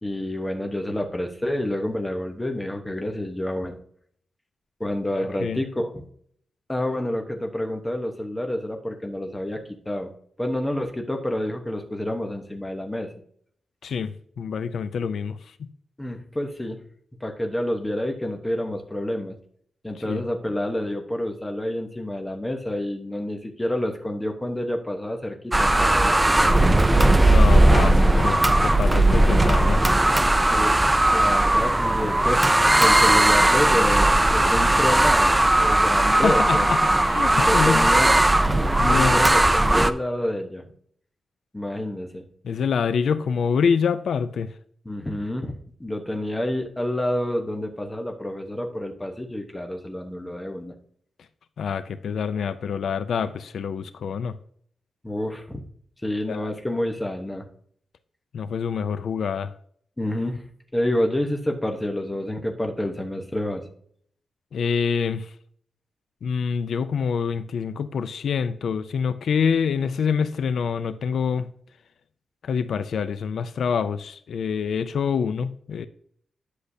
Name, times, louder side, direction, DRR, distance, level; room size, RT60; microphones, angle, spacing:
voice 1, 0.0-3.7 4.8-6.0 6.7-10.1 10.4-13.1 16.0-16.8 17.2-19.4 19.8-26.6 30.5-32.4 32.8-36.7 37.3-38.1 38.8-40.6 41.5-42.2 44.8-50.7 55.0-55.6 56.0-57.5 60.0-60.4 60.7-63.6, left 1 dB, 10° left, 0.9 m, -28 dB
voice 2, 5.2-5.6 13.8-15.7 20.0-20.2 27.2-29.8 36.1-37.9 38.8-39.3 42.4-44.5 51.6-54.4 56.3-56.5 58.3-59.5 64.5-65.3 66.2-71.5 72.4-75.9, left 6 dB, 80° left, 0.4 m, -26 dB
sound 1, 25.5-39.9, right 1 dB, 10° right, 0.4 m, -18 dB
10.0 x 6.5 x 2.7 m
wide cardioid pair, 145°, 0 cm